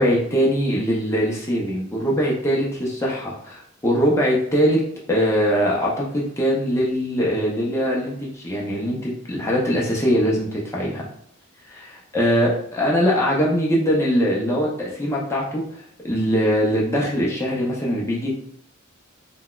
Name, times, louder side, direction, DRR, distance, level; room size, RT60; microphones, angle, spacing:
voice 1, 0.0-4.8 5.1-11.1 12.1-18.3, equal, 15° left, -4 dB, 0.5 m, -22 dB
3.8 x 2.2 x 2.3 m, 0.68 s
head